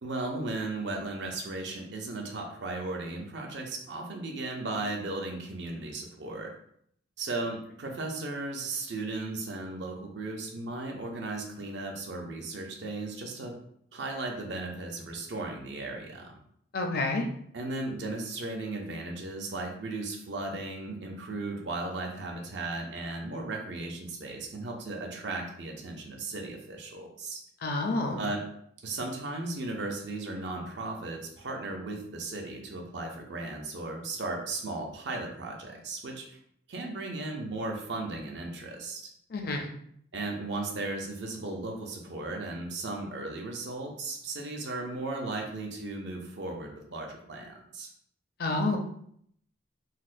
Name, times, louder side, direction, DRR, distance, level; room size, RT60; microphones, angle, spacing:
voice 1, 0.0-6.5 7.2-13.6 13.9-16.4 17.5-27.4 28.2-28.4 28.8-36.4 36.7-39.1 40.1-47.9, right 2 dB, 60° right, 2 dB, 0.6 m, -36 dB
voice 2, 16.7-17.3 27.6-28.2 39.3-39.7 48.4-48.8, left 2 dB, 50° left, 4 dB, 0.5 m, -28 dB
4.0 x 2.1 x 2.5 m, 0.68 s
head